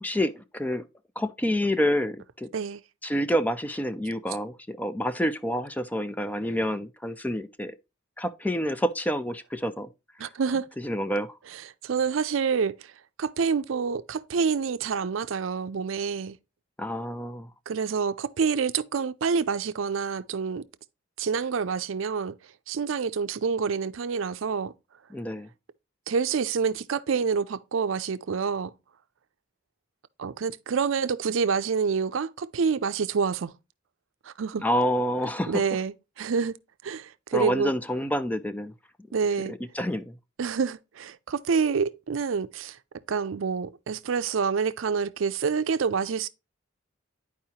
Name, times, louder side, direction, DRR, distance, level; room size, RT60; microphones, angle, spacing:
voice 1, 0.0-0.8 1.2-2.5 3.0-7.8 8.2-9.9 10.8-11.4 16.8-17.5 25.1-25.5 34.6-35.6 37.3-38.7 39.5-40.2, equal, 10° left, 0.4 m, -28 dB
voice 2, 10.2-10.7 11.8-12.9 13.2-16.4 17.7-20.6 21.2-22.4 22.7-24.7 26.1-28.7 30.2-33.5 34.2-34.6 35.5-36.5 36.8-37.7 39.1-39.5 40.4-42.8 43.1-46.3, right 5 dB, 75° right, 0.5 m, -27 dB
10.5 x 4.8 x 2.8 m
head